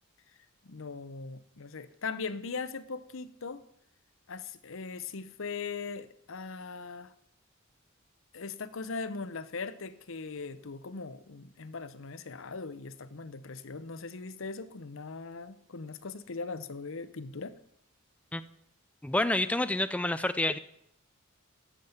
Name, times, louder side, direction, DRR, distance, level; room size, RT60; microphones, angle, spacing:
voice 1, 0.6-3.6 4.3-7.1 8.3-17.5, left 4 dB, 65° left, 14 dB, 0.8 m, -40 dB
voice 2, 19.0-20.6, left 1 dB, 5° left, 11 dB, 0.4 m, -28 dB
12.5 x 7.4 x 8.0 m, 0.75 s
head